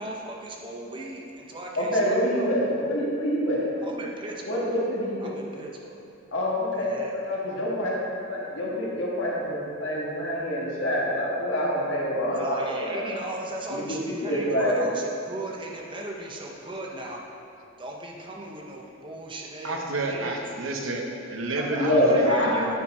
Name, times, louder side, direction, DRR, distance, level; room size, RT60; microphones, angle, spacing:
voice 1, 0.0-2.8 3.8-4.7 5.2-6.1 6.7-7.2 12.3-17.2 17.8-20.4 21.6-22.7, right 1 dB, 25° right, -1 dB, 0.8 m, -37 dB
voice 2, 1.7-3.7 4.4-5.3 6.3-13.1 13.7-14.0 14.3-14.9 21.8-22.8, equal, 75° left, -5 dB, 1.7 m, -26 dB
voice 3, 19.6-22.6, right 2 dB, 90° right, 2 dB, 0.9 m, -30 dB
9.6 x 4.5 x 4.3 m, 2.6 s
head